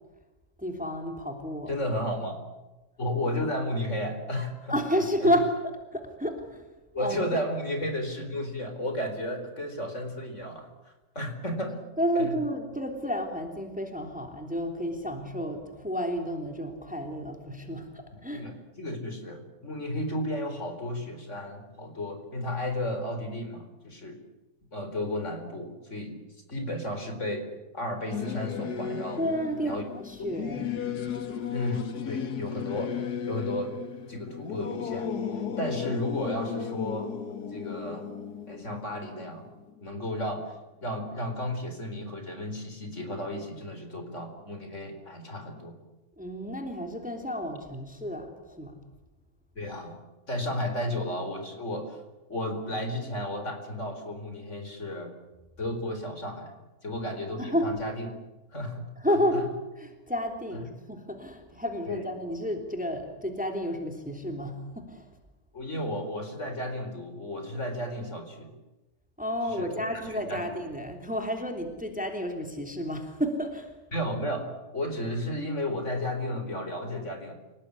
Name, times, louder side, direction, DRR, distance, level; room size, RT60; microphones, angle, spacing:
voice 1, 0.6-1.7 4.7-5.5 5.9-6.7 7.0-7.2 12.0-18.5 29.2-30.9 46.2-48.8 57.4-57.7 59.0-59.5 59.8-65.0 69.2-73.7, equal, 5° right, 4 dB, 3.2 m, -31 dB
voice 2, 1.7-2.4 3.0-4.7 5.2-5.3 6.9-11.9 12.1-12.4 18.1-24.2 24.7-26.2 26.5-27.5 27.7-29.2 29.6-29.8 31.5-32.9 33.3-33.7 34.1-35.1 35.6-37.1 37.5-38.1 38.5-39.5 39.8-40.4 40.8-45.8 49.5-50.0 50.3-52.0 52.3-55.1 55.6-56.5 56.8-58.1 58.5-59.5 60.5-60.6 61.9-62.1 65.5-68.5 69.4-70.5 73.9-77.3, left 1 dB, 45° left, 6 dB, 4.7 m, -33 dB
Singing / Musical instrument, 28.1-40.0, left 7 dB, 75° left, 2.0 m, -35 dB
28.5 x 18.5 x 9.9 m, 1.1 s
omnidirectional pair, 1.7 m